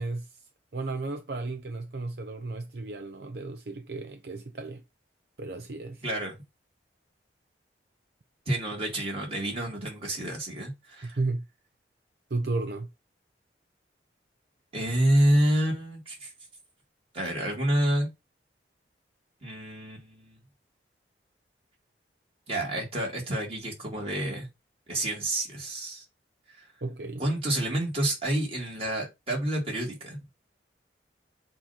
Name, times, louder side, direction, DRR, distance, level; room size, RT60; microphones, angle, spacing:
voice 1, 0.0-4.8 5.4-6.0 11.0-11.5 12.3-12.9 26.8-27.3, right 3 dB, 65° right, 0.7 m, -34 dB
voice 2, 6.0-6.4 8.5-11.2 14.7-16.3 17.1-18.1 19.4-20.4 22.5-24.5 24.9-26.0 26.6-26.7 27.2-30.2, right 1 dB, 35° right, 2.9 m, -28 dB
7.4 x 3.0 x 5.7 m
head